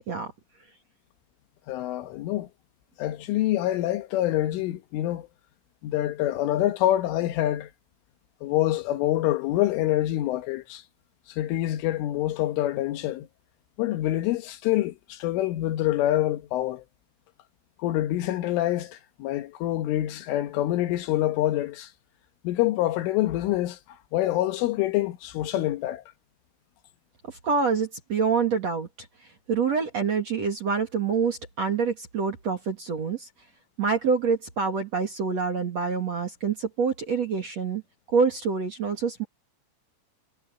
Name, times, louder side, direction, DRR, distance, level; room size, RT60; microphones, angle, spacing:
voice 1, 1.7-2.5 3.0-5.3 5.8-7.7 8.4-10.8 11.3-13.3 13.8-16.8 17.8-21.9 22.4-26.0, left 14 dB, 80° left, 3.8 m, -26 dB
voice 2, 27.3-29.1 29.5-33.3 33.8-37.8 38.1-39.2, right 5 dB, 45° right, 2.4 m, -26 dB
omnidirectional pair, 5.6 m